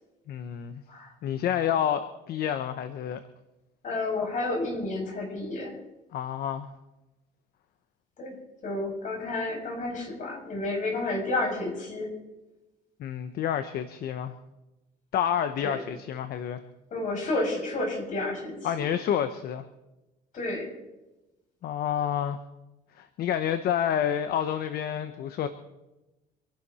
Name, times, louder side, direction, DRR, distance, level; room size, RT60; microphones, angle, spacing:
voice 1, 0.3-0.8 1.2-3.2 6.1-6.7 13.0-14.3 15.1-16.6 18.6-19.6 21.6-22.4 23.0-25.5, left 9 dB, 65° left, 11 dB, 1.0 m, -29 dB
voice 2, 3.8-5.7 8.2-8.4 8.6-12.1 15.6-15.8 16.9-18.6 20.3-20.7, left 2 dB, 50° left, 0 dB, 7.2 m, -30 dB
26.0 x 11.5 x 4.3 m, 1.0 s
cardioid pair, 110°, 17 cm